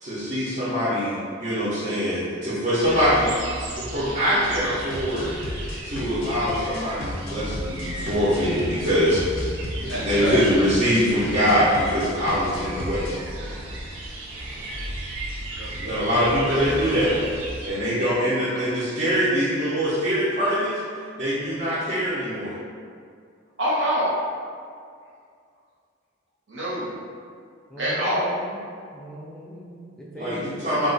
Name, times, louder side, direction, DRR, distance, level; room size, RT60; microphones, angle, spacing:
voice 1, 0.0-3.3 3.6-5.3 5.8-13.0 15.7-17.1 17.6-20.8 21.2-22.5 30.1-30.9, equal, 40° right, -13 dB, 0.7 m, -23 dB
sound 1, 2.8-17.7, right 1 dB, 90° right, 0.5 m, -35 dB
sound 2, 4.9-13.2, left 1 dB, 85° left, 0.6 m, -36 dB
voice 2, 9.9-10.4 15.5-15.7 16.5-17.2 18.5-18.6 23.6-24.2 26.5-26.9 27.8-28.4, equal, 70° right, -8 dB, 1.0 m, -26 dB
voice 3, 27.7-28.6 28.9-30.5, right 1 dB, 5° left, -5 dB, 0.4 m, -39 dB
2.4 x 2.4 x 3.8 m, 2.2 s
head